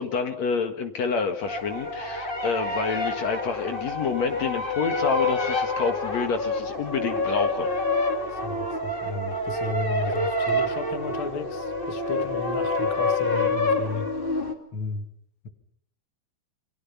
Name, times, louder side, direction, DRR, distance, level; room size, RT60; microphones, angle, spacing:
voice 1, 0.0-7.7, left 5 dB, 60° left, 6 dB, 2.8 m, -28 dB
sound 1, 1.4-14.5, left 2 dB, 20° left, 2.3 m, -27 dB
voice 2, 8.3-15.1, left 3 dB, 45° left, 8 dB, 2.4 m, -34 dB
29.0 x 24.0 x 5.8 m, 0.67 s
omnidirectional pair, 3.6 m